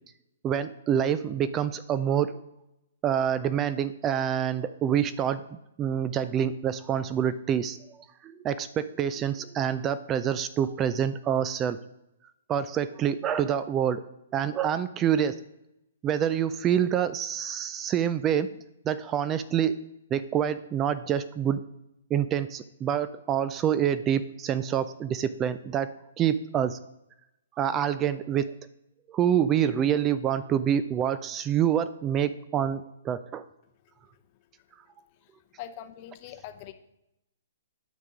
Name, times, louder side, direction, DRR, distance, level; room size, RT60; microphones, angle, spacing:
voice 1, 0.4-2.4 3.0-8.0 8.2-11.8 12.5-14.0 14.3-15.4 16.0-18.5 18.9-19.8 20.1-21.6 22.1-26.8 27.6-28.5 29.1-33.4, right 9 dB, 20° right, 14 dB, 0.3 m, -27 dB
voice 2, 35.6-36.7, left 11 dB, 40° left, 9 dB, 0.7 m, -42 dB
9.3 x 3.6 x 6.2 m, 0.87 s
hypercardioid pair, 135°, 0 cm